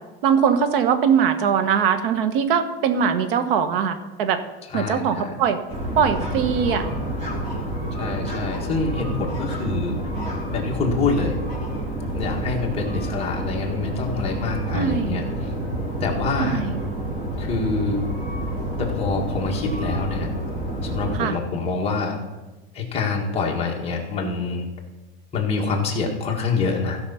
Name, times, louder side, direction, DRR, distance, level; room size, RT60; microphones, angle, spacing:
voice 1, 0.2-4.4 4.7-5.6 6.0-6.8 14.7-15.2 16.4-16.8 21.1-21.3, right 7 dB, 60° right, 10 dB, 1.3 m, -21 dB
voice 2, 4.7-5.4 8.0-10.0 10.5-11.4 12.1-15.5 16.0-16.6 17.4-18.1 18.8-20.3 20.8-22.2 22.7-24.7 25.3-27.0, left 4 dB, 20° left, -1 dB, 1.8 m, -26 dB
sound 1, 5.7-21.2, right 1 dB, 20° right, 3.8 m, -28 dB
15.5 x 5.8 x 5.6 m, 1.1 s
supercardioid pair, 155°, 31 cm